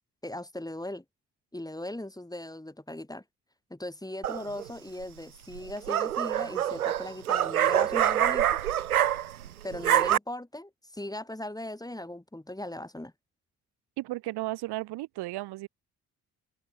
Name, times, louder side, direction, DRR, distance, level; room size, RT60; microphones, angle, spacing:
voice 1, 0.2-1.0 1.5-3.2 3.7-8.6 9.6-13.1, left 1 dB, 10° left, 4.1 m, -38 dB
sound 1, 4.2-4.7 5.6-9.5 9.7-10.2, right 11 dB, 85° right, 1.0 m, -25 dB
voice 2, 14.0-15.7, right 18 dB, 65° right, 2.9 m, -34 dB
open air
figure-of-eight pair, 40°, 43 cm